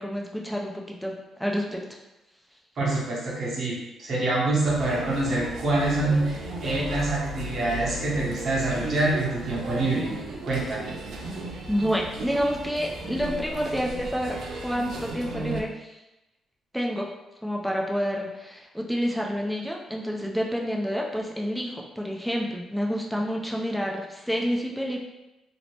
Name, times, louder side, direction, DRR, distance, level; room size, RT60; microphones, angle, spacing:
voice 1, 0.0-1.9 11.7-16.0 16.7-17.1 17.4-25.0, equal, ahead, -1 dB, 0.4 m, -29 dB
voice 2, 2.8-10.1 10.5-10.9, right 2 dB, 55° right, -5 dB, 1.0 m, -26 dB
sound 1, 4.6-15.6, right 1 dB, 70° right, 0.4 m, -35 dB
2.7 x 2.0 x 3.1 m, 0.96 s
cardioid pair, 90°, 0 cm